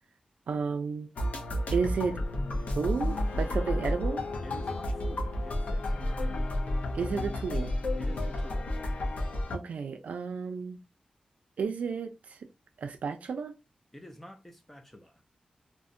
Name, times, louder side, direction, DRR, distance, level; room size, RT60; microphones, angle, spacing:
voice 1, 0.5-1.1 1.7-2.2 2.7-4.2 6.9-7.7 9.5-10.8 11.6-12.4 12.8-13.5, right 5 dB, 75° right, 0.4 m, -32 dB
sound 1, 1.2-9.6, left 1 dB, 80° left, 0.5 m, -31 dB
voice 2, 4.4-6.6 7.9-8.7 13.9-15.2, equal, 10° left, 0.4 m, -49 dB
2.6 x 2.0 x 2.5 m
wide cardioid pair, 165°, 2 cm